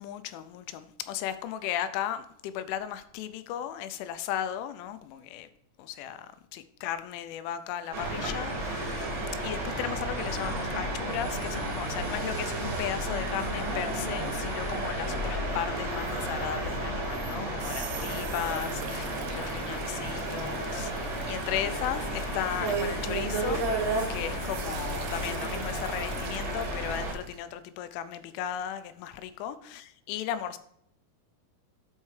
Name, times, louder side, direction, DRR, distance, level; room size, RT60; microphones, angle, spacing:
voice 1, 0.0-5.5 5.8-9.1 9.4-23.7 24.1-29.6 30.1-30.6, left 10 dB, 85° left, 3.0 m, -36 dB
sound 1, 7.9-27.1, right 1 dB, 65° right, 1.0 m, -32 dB
sound 2, 10.2-12.5, left 1 dB, 20° left, 0.9 m, -48 dB
Kitchen sink - water being turned on and running, 17.4-24.1 24.4-27.4, right 10 dB, 85° right, 2.5 m, -47 dB
13.0 x 4.5 x 3.2 m
omnidirectional pair, 5.6 m